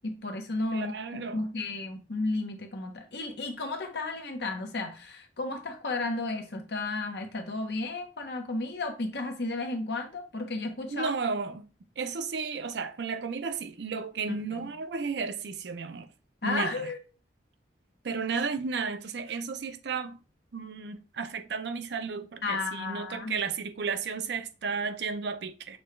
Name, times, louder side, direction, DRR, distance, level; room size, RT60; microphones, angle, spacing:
voice 1, 0.0-0.9 1.3-11.1 14.3-14.7 16.4-17.0 22.4-23.3, left 2 dB, 65° left, 0.9 m, -33 dB
voice 2, 0.7-1.5 10.9-11.7 12.0-16.1 16.4-16.8 18.0-20.2 20.5-25.8, right 5 dB, 70° right, 0.5 m, -33 dB
6.2 x 2.3 x 3.2 m
head